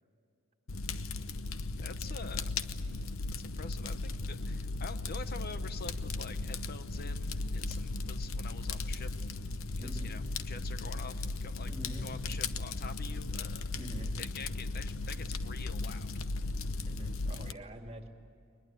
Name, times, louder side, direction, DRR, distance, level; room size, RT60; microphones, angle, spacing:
Fire, 0.7-17.5, left 3 dB, 75° left, 0.9 m, -36 dB
voice 1, 1.8-2.5 3.4-9.1 9.8-11.7 12.0-13.7 14.2-16.1, left 4 dB, 45° left, 11 dB, 0.8 m, -46 dB
voice 2, 9.8-10.2 11.6-12.1 13.7-14.1 16.8-18.1, right 1 dB, 30° right, 4 dB, 2.5 m, -45 dB
22.0 x 21.0 x 9.0 m, 2.5 s
head